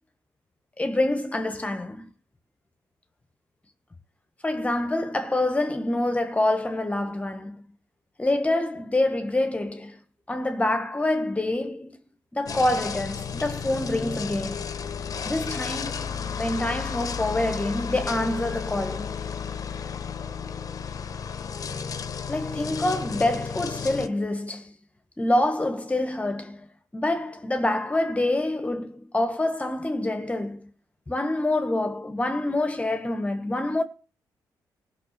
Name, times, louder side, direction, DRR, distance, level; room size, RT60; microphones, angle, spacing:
voice 1, 0.8-2.1 4.4-7.6 8.2-10.0 10.3-12.0 12.3-14.7 15.2-19.1 22.3-24.7 25.2-30.6 31.1-33.8, left 1 dB, 15° left, 1.7 m, -26 dB
sound 1, 12.5-24.1, left 6 dB, 50° left, 1.1 m, -33 dB
16.0 x 6.2 x 6.8 m
cardioid pair, 90°, 8 cm